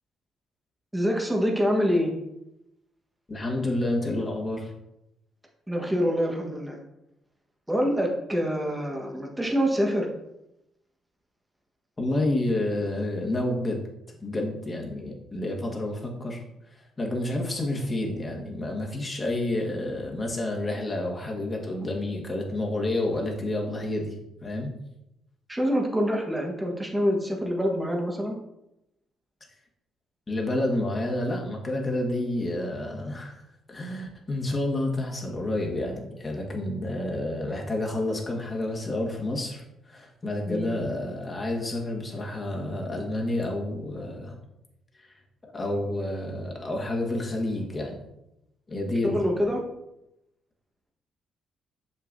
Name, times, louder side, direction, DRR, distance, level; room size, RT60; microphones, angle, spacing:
voice 1, 0.9-2.1 5.7-6.8 7.7-10.1 25.5-28.4 40.5-40.7 49.0-49.6, equal, 10° right, 0 dB, 1.3 m, -26 dB
voice 2, 3.3-4.7 12.0-13.8 14.1-16.4 17.0-24.1 24.4-24.7 30.3-33.4 33.7-44.4 45.4-48.0 48.7-49.1, left 1 dB, 25° left, 0 dB, 1.6 m, -29 dB
6.9 x 6.0 x 2.7 m, 0.87 s
cardioid pair, 90°, 0 cm